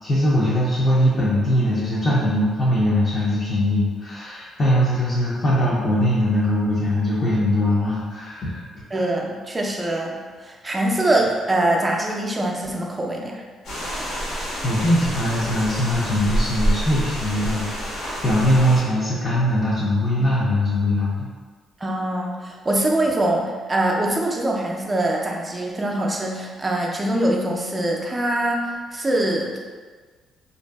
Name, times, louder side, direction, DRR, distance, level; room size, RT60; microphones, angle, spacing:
voice 1, 0.0-8.6 14.6-21.3, left 1 dB, 40° left, -8 dB, 0.5 m, -21 dB
voice 2, 8.9-13.4 21.8-29.6, right 1 dB, 20° right, -1 dB, 0.4 m, -23 dB
sound 1, 13.6-18.8, right 1 dB, 85° left, 1.2 m, -27 dB
2.6 x 2.3 x 2.3 m, 1.5 s
cardioid pair, 100°, 0 cm